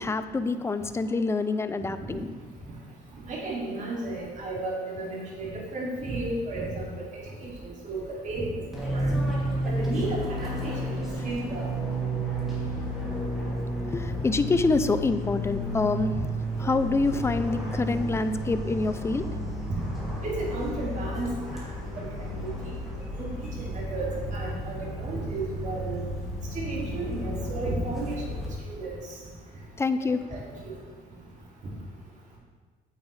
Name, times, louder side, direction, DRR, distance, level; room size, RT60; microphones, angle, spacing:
voice 1, 0.0-2.3 13.9-16.3 16.6-19.2 29.8-30.2, left 3 dB, 15° left, 11 dB, 0.4 m, -26 dB
voice 2, 3.3-7.5 7.8-8.6 8.9-9.1 9.6-11.7 19.7-19.8 20.2-21.4 22.0-22.5 23.1-26.0 26.5-28.2 28.7-28.9 30.3-30.7, right 2 dB, 45° right, -4 dB, 2.7 m, -33 dB
Fixed-wing aircraft airplane, 8.7-28.4, equal, ahead, 2.7 m, -32 dB
9.0 x 7.9 x 3.3 m, 1.4 s
cardioid pair, 110°, 17 cm